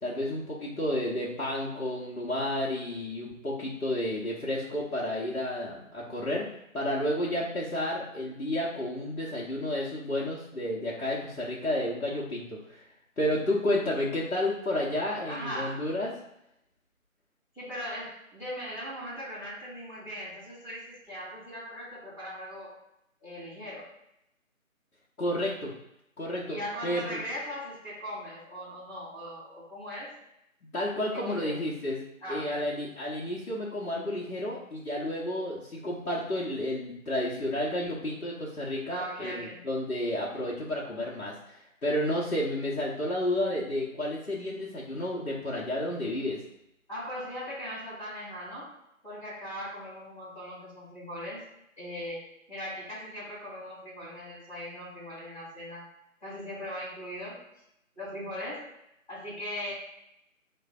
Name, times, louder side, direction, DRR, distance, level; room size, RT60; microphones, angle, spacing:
voice 1, 0.0-6.5 6.7-12.9 13.2-16.1 25.2-25.7 26.2-26.6 26.8-27.2 30.7-32.0 32.3-46.4, left 1 dB, 85° left, -6 dB, 1.0 m, -31 dB
voice 2, 15.3-15.8 17.5-22.8 23.2-23.9 26.4-30.1 30.8-31.6 32.2-32.6 38.9-39.6 46.9-48.7 49.0-51.4 51.8-55.9 56.2-57.4 57.9-58.6 59.1-59.7, equal, 5° left, -26 dB, 1.3 m, -39 dB
4.2 x 3.2 x 2.3 m, 0.81 s
figure-of-eight pair, 165°, 42 cm